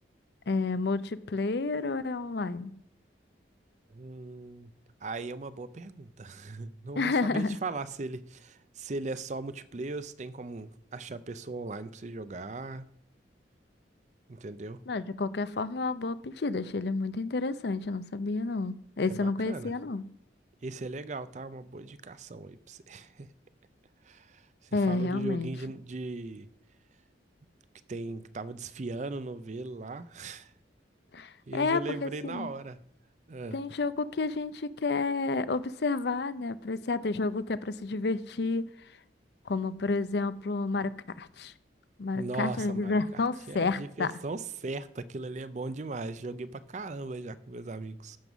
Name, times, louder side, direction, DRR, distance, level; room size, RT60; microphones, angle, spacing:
voice 1, 0.5-2.7 7.0-7.6 14.9-20.0 24.7-25.5 31.1-32.5 33.5-38.7 39.5-40.9 41.2-41.5 42.0-44.1, left 3 dB, 65° left, 0.5 m, -30 dB
voice 2, 3.9-4.7 5.0-12.9 14.3-14.8 19.2-19.7 20.6-23.3 24.0-24.4 24.7-26.5 27.9-30.5 31.5-32.8 33.3-33.6 42.1-48.2, right 3 dB, 40° right, 0.5 m, -38 dB
14.0 x 5.4 x 6.1 m
head